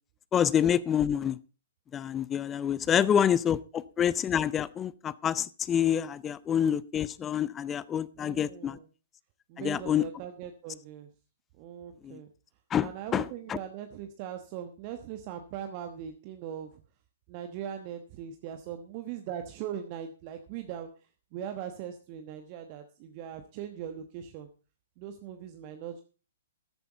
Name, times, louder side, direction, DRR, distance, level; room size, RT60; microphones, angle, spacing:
voice 1, 0.3-1.4 1.9-8.8 9.6-10.0 12.0-12.2 12.7-13.6, left 9 dB, 20° left, 0.6 m, -27 dB
voice 2, 8.2-8.9 9.5-11.1 11.6-12.3 12.8-16.8 17.3-20.9 21.3-24.5 25.0-26.0, right 9 dB, 35° right, 1.1 m, -40 dB
13.5 x 11.0 x 3.9 m
figure-of-eight pair, 120°, 0 cm